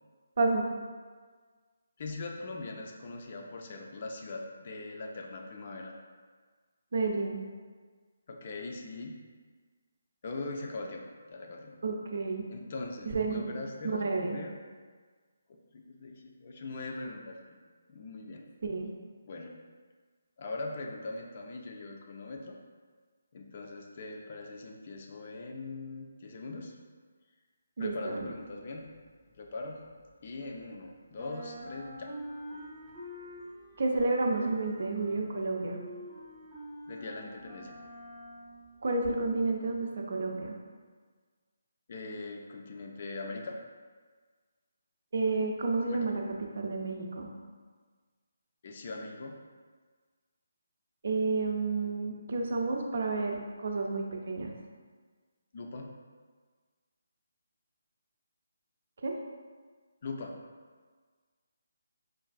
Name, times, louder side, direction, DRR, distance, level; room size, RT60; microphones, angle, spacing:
voice 1, 2.0-5.9 8.3-9.2 10.2-11.8 12.5-14.5 15.7-17.6 17.9-18.4 19.2-19.5 20.4-22.6 23.3-26.7 27.8-29.0 29.4-29.8 30.2-32.1 36.9-37.8 41.9-43.6 45.9-46.1 48.6-49.4 55.5-55.9 60.0-60.4, left 3 dB, 45° left, 1 dB, 0.4 m, -41 dB
voice 2, 6.9-7.4 11.8-12.5 13.1-13.4 13.8-14.4 18.6-18.9 27.8-28.3 33.8-35.8 38.8-40.6 45.1-46.2 46.5-47.3 51.0-54.5 59.0-59.1, right 3 dB, 55° right, 1 dB, 0.5 m, -30 dB
sound 1, 28.0-30.8 31.1-39.2, equal, 5° right, 0.6 m, -47 dB
4.5 x 2.5 x 2.4 m, 1.5 s
figure-of-eight pair, 150°, 0 cm